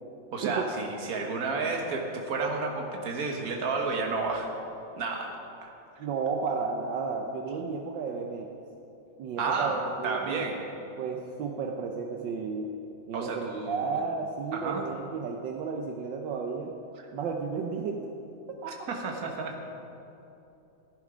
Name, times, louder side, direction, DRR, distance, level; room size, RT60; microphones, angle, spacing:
voice 1, 0.3-4.5 5.0-5.3 5.6-5.7 9.4-10.6 13.1-14.0 14.5-14.8 18.7-19.5, right 4 dB, 50° right, 2 dB, 1.7 m, -31 dB
voice 2, 6.0-8.5 9.2-10.5 11.0-12.7 13.1-16.7 17.1-18.1 18.6-18.9, right 5 dB, 75° right, 2 dB, 1.5 m, -33 dB
15.0 x 10.5 x 5.1 m, 2.9 s
omnidirectional pair, 2.1 m